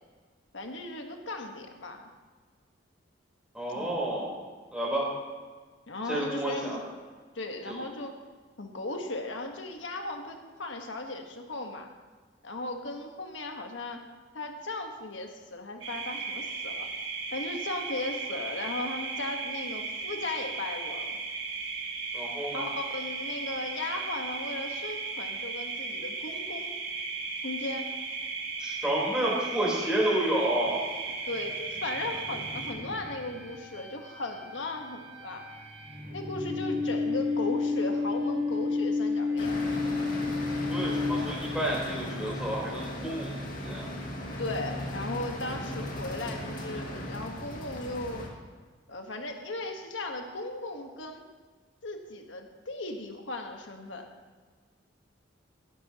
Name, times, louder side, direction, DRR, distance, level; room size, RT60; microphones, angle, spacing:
voice 1, 0.5-2.0 3.7-4.0 5.9-6.8 7.3-8.1 8.6-11.9 12.4-14.0 14.3-16.9 17.3-21.2 22.4-26.7 27.4-27.9 31.3-35.4 36.1-39.6 40.7-40.9 44.4-48.2 48.9-51.2 51.8-54.1, left 2 dB, 75° left, 4 dB, 1.4 m, -37 dB
voice 2, 3.5-4.3 4.7-5.1 6.1-6.8 7.7-7.8 22.1-22.6 28.6-30.8 40.7-43.9, right 1 dB, 5° right, -5 dB, 4.2 m, -30 dB
sound 1, 15.8-32.7, right 4 dB, 65° right, 2.3 m, -36 dB
sound 2, 30.7-41.7, left 3 dB, 35° right, 1.6 m, -32 dB
sound 3, 39.4-48.3, left 1 dB, 45° left, 2.1 m, -37 dB
16.5 x 12.5 x 3.0 m, 1.4 s
head